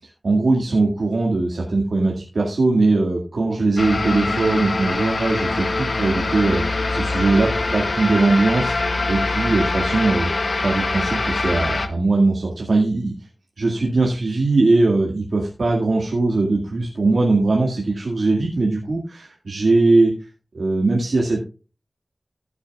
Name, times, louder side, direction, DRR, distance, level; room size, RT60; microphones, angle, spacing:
voice 1, 0.2-10.3 10.6-13.1 13.6-20.1 20.5-21.4, right 3 dB, 80° right, -1 dB, 2.0 m, -20 dB
sound 1, 3.8-11.9, left 2 dB, 65° left, 1.1 m, -23 dB
15.0 x 8.7 x 2.4 m, 0.33 s
wide cardioid pair, 60°, 0 cm